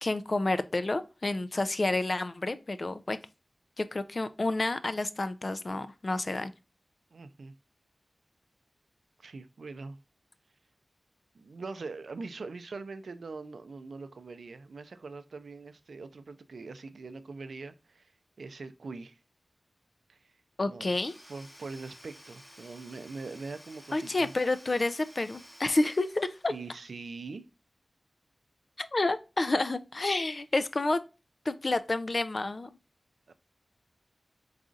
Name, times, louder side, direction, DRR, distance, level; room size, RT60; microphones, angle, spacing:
voice 1, 0.0-3.2 3.8-6.5 20.6-21.1 23.9-26.5 28.8-31.0 31.5-32.7, left 2 dB, 45° left, 0.4 m, -29 dB
voice 2, 7.1-7.5 9.2-10.0 11.3-18.1 18.4-19.2 20.1-20.3 20.7-20.9 21.3-24.3 26.5-27.5 33.3-33.4, right 4 dB, 90° right, 0.4 m, -42 dB
Domestic sounds home sounds / Tools, 20.8-26.9, equal, 15° left, 0.8 m, -53 dB
4.0 x 3.8 x 2.4 m
wide cardioid pair, 75°, 0 cm